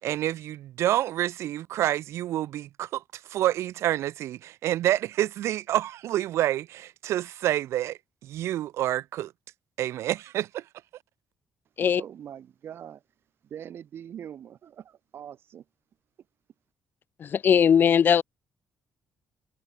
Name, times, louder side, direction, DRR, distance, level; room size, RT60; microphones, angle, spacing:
voice 1, 0.0-9.3 9.8-10.7, right 13 dB, 85° right, 3.0 m, -28 dB
voice 2, 11.8-13.0 13.4-15.6, right 9 dB, 55° right, 4.7 m, -42 dB
voice 3, 17.2-18.2, left 8 dB, 45° left, 1.0 m, -19 dB
cardioid pair, 130°, 5 cm